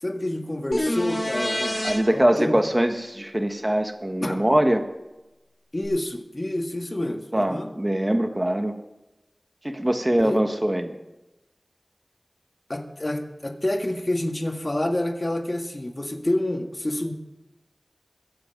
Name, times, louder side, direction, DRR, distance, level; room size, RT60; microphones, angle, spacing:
voice 1, 0.0-1.8 2.1-2.5 4.2-4.4 5.7-7.7 10.2-10.4 12.7-17.1, left 1 dB, 35° left, 4 dB, 1.8 m, -28 dB
sound 1, 0.7-2.0 5.8-5.9, left 1 dB, 15° left, 4.2 m, -26 dB
voice 2, 1.8-4.8 7.3-8.7 9.6-11.0, right 1 dB, 25° right, 6 dB, 1.5 m, -22 dB
22.5 x 8.2 x 5.3 m, 0.98 s
wide cardioid pair, 55°, 0 cm